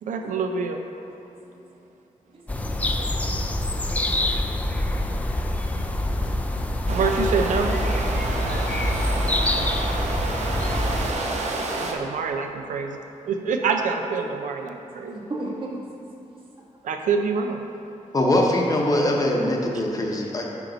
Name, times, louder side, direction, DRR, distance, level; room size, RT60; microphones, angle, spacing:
voice 1, 0.0-0.8 6.9-7.7 11.8-13.0 13.3-15.2 16.8-17.6, right 5 dB, 90° right, 4 dB, 0.5 m, -26 dB
voice 2, 2.3-2.7 3.4-3.9 4.9-5.0 6.1-6.6 15.1-15.8, right 2 dB, 45° right, -4 dB, 1.3 m, -38 dB
sound 1, 2.5-11.1, left 1 dB, 10° left, 0.3 m, -25 dB
sound 2, 6.9-11.9, right 2 dB, 60° right, 0.7 m, -29 dB
voice 3, 18.1-20.5, left 1 dB, 30° left, -1 dB, 0.8 m, -22 dB
9.0 x 4.5 x 3.9 m, 2.9 s
wide cardioid pair, 165°, 13 cm